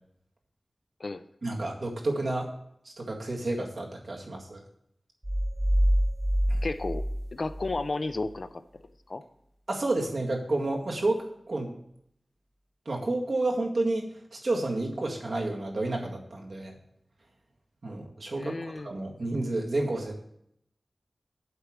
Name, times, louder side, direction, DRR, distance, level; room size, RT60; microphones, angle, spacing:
voice 1, 1.4-2.5 2.9-4.6 6.5-6.6 9.7-11.8 12.9-16.7 17.8-20.2, right 2 dB, 75° right, -1 dB, 1.8 m, -30 dB
sound 1, 5.2-7.9, equal, 15° right, 0.5 m, -26 dB
voice 2, 6.6-7.0 7.3-8.8 9.1-9.2 18.3-18.9, left 3 dB, 60° left, 11 dB, 0.5 m, -33 dB
8.1 x 4.9 x 7.4 m, 0.74 s
wide cardioid pair, 80°, 0 cm